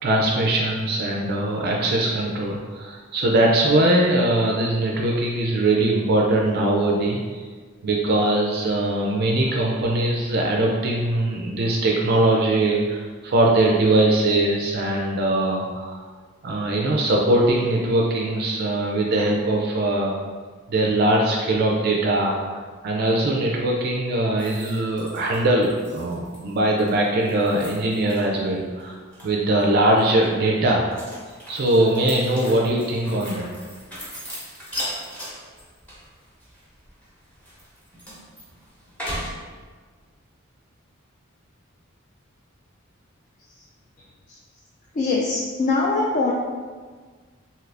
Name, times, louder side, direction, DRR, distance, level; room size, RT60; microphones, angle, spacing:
voice 1, 0.0-7.4 7.8-16.0 16.4-20.1 20.7-29.0 29.2-30.9 31.5-33.4, right 1 dB, 50° right, -1 dB, 0.4 m, -21 dB
sound 1, 24.4-28.5 28.8-29.6 30.0-39.3, equal, 5° left, 0.8 m, -38 dB
voice 2, 44.9-46.3, left 3 dB, 40° left, -4 dB, 0.3 m, -22 dB
2.8 x 2.5 x 3.2 m, 1.5 s
head